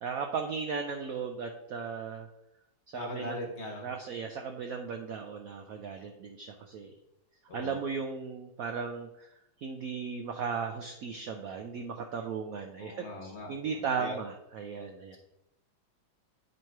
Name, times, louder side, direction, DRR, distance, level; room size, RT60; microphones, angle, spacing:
voice 1, 0.0-2.3 2.9-3.4 3.8-6.9 7.5-9.3 9.6-15.2, right 5 dB, 85° right, 4 dB, 0.7 m, -36 dB
voice 2, 2.9-3.9 7.5-7.8 12.8-14.2, left 1 dB, 40° left, 0 dB, 1.2 m, -40 dB
9.0 x 3.0 x 4.6 m, 0.87 s
omnidirectional pair, 2.1 m